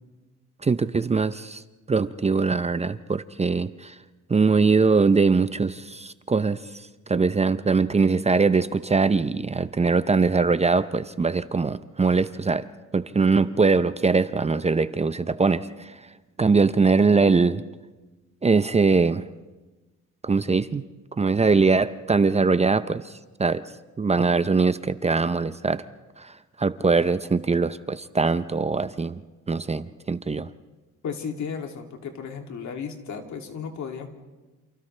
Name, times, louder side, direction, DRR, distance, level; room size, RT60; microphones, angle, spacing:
voice 1, 0.6-1.6 1.9-3.9 4.3-6.6 7.1-12.7 12.9-15.9 16.4-17.6 18.4-19.2 20.2-20.8 21.2-23.1 23.4-23.6 24.0-25.8 26.2-26.3 26.6-29.2 29.5-30.5, right 4 dB, 20° right, 13 dB, 0.6 m, -22 dB
voice 2, 31.0-34.1, left 6 dB, 70° left, 3 dB, 2.7 m, -34 dB
29.0 x 28.0 x 3.3 m, 1.2 s
cardioid pair, 90°, 30 cm